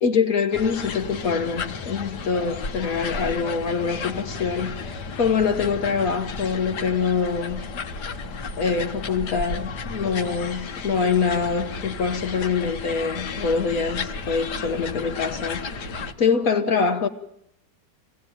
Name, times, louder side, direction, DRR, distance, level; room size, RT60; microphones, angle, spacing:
voice 1, 0.0-7.7 8.6-17.1, left 5 dB, 55° left, 1.5 m, -24 dB
sound 1, 0.5-16.1, left 4 dB, 75° left, 1.8 m, -33 dB
25.0 x 18.0 x 9.2 m
omnidirectional pair, 1.8 m